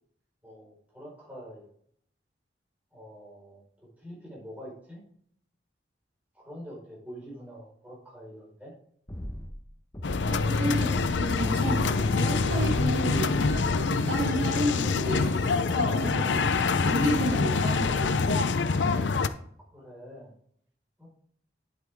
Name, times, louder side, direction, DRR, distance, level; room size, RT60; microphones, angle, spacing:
voice 1, 0.4-1.7 2.9-3.6 4.0-5.0 6.3-8.7 19.7-20.4 21.0-21.1, equal, 10° right, -6 dB, 4.5 m, -45 dB
sound 1, 9.1-9.6 9.9-10.4 10.8-11.3 11.7-12.1 12.5-12.9 13.4-13.8, equal, 20° left, 1.0 m, -39 dB
sound 2, 10.0-19.3, left 4 dB, 85° left, 0.6 m, -25 dB
voice 2, 10.2-16.5 16.8-18.4, equal, 75° right, -1 dB, 2.5 m, -32 dB
10.5 x 8.0 x 3.5 m, 0.65 s
head